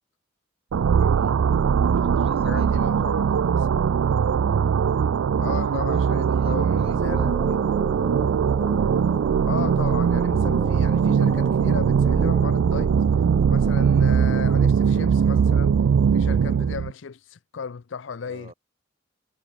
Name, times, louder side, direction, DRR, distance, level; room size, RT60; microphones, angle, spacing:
sound 1, 0.7-16.9, right 7 dB, 85° right, 0.4 m, -21 dB
voice 1, 0.9-1.4 1.9-3.0 5.5-7.7 18.2-18.5, right 2 dB, 30° right, 3.8 m, -45 dB
voice 2, 2.4-3.2 3.6-3.9 5.4-7.6 9.5-13.0 13.5-15.8 16.1-18.5, left 5 dB, 65° left, 0.5 m, -35 dB
sound 2, 6.7-14.2, equal, ahead, 2.6 m, -39 dB
head